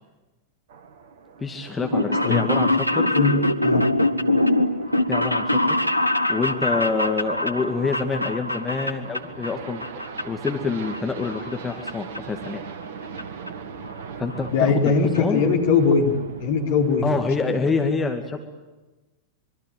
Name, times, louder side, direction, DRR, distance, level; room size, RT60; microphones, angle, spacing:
sound 1, 0.7-17.5, right 6 dB, 60° right, 1.9 m, -40 dB
voice 1, 1.4-3.1 5.1-5.8 6.3-9.8 10.2-12.6 14.2-15.4 17.0-18.4, left 4 dB, 15° left, 5 dB, 2.3 m, -26 dB
sound 2, 1.8-9.5 9.8-10.5 10.8-11.9 12.2-12.3 13.2-13.3 13.5-13.6 13.8-13.9 14.2-14.5 14.9-15.0 15.2-15.3, left 1 dB, 90° right, 1.1 m, -23 dB
voice 2, 14.5-16.1 16.4-17.0 17.4-17.5, left 5 dB, 55° left, 3 dB, 4.5 m, -20 dB
25.5 x 24.0 x 9.3 m, 1.1 s
figure-of-eight pair, 90°, 0 cm